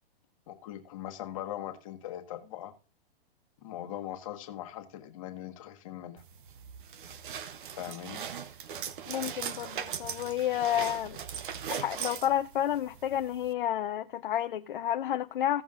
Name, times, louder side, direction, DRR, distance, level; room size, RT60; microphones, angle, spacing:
voice 1, 0.5-2.7 3.6-6.2 7.8-8.2, left 12 dB, 30° left, 1.4 m, -40 dB
sound 1, 6.2-13.5, right 8 dB, 55° right, 0.9 m, -39 dB
voice 2, 9.1-11.2 11.7-15.6, left 11 dB, 55° left, 0.6 m, -30 dB
16.0 x 7.3 x 2.5 m
hypercardioid pair, 165°, 31 cm